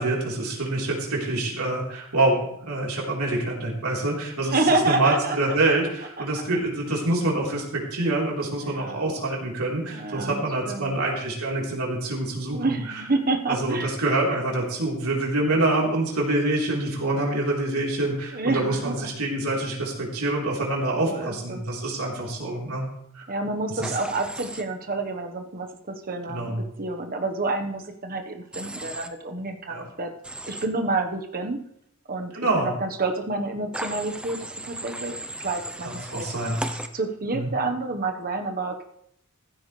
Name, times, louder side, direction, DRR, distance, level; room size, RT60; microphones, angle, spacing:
voice 1, 0.0-12.6 13.5-22.9 23.1-23.3 23.8-23.9 26.3-26.6 29.7-29.9 32.3-32.7 35.8-36.6 37.3-37.5, right 2 dB, 85° right, -2 dB, 3.9 m, -26 dB
voice 2, 4.5-5.4 6.2-6.3 8.7-9.1 9.9-11.0 12.5-13.9 18.3-19.0 20.9-21.6 23.3-30.1 30.4-31.6 32.1-32.3 32.6-36.3 36.9-38.8, right 3 dB, 40° right, 4 dB, 1.3 m, -28 dB
Human voice / Train, 23.8-24.6 28.5-29.1 30.2-30.7 33.7-36.9, right 1 dB, 5° right, 0.7 m, -36 dB
15.0 x 13.0 x 3.3 m, 0.73 s
head